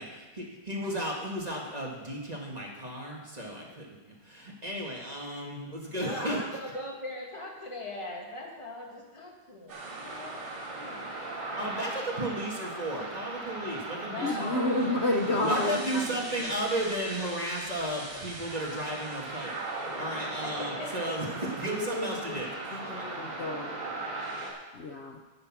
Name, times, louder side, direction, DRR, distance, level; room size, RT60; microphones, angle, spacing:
voice 1, 0.0-6.8 11.6-14.5 15.1-23.0, right 1 dB, 20° right, -2 dB, 1.6 m, -34 dB
voice 2, 6.0-10.4 10.7-11.1 11.5-11.7 14.0-15.0 15.3-15.7 16.0-16.2 20.4-21.1, left 1 dB, 15° left, -1 dB, 1.6 m, -40 dB
sound 1, 9.7-24.5, right 2 dB, 75° right, 2.8 m, -38 dB
voice 3, 14.2-16.2 21.6-22.4 22.9-23.7 24.7-25.2, left 1 dB, 70° left, 2 dB, 0.6 m, -30 dB
9.5 x 8.1 x 6.0 m, 1.2 s
omnidirectional pair, 2.1 m